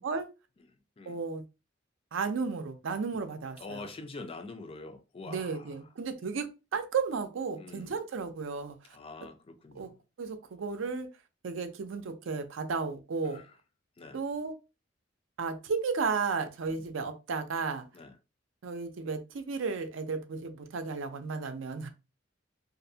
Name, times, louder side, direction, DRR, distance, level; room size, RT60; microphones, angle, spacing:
voice 1, 1.1-1.4 2.1-3.8 5.2-8.8 9.7-9.9 10.2-11.1 11.4-13.4 14.1-14.6 15.4-17.8 18.6-21.9, right 5 dB, 75° right, 0.4 m, -33 dB
voice 2, 3.6-5.7 7.6-8.0 8.9-10.0 13.3-13.4 14.0-14.2 16.7-16.8 17.9-18.1, left 3 dB, 30° left, 0.4 m, -45 dB
2.5 x 2.0 x 2.6 m
head